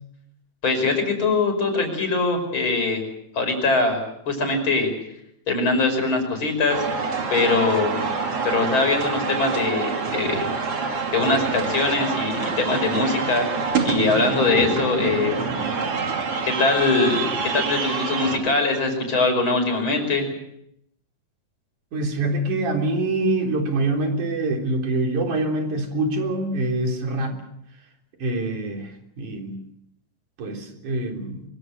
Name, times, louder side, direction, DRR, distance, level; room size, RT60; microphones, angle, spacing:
voice 1, 0.6-3.0 3.3-4.9 5.5-6.8 7.3-8.0 8.4-10.5 11.1-13.5 13.8-15.5 16.4-20.3, left 3 dB, 40° left, 5 dB, 6.2 m, -22 dB
sound 1, 6.7-18.4, right 5 dB, 50° right, 3.6 m, -26 dB
voice 2, 21.9-27.4 28.2-29.6 30.4-31.4, right 2 dB, 80° right, 2 dB, 5.2 m, -25 dB
24.0 x 24.0 x 6.6 m, 0.76 s
omnidirectional pair, 3.4 m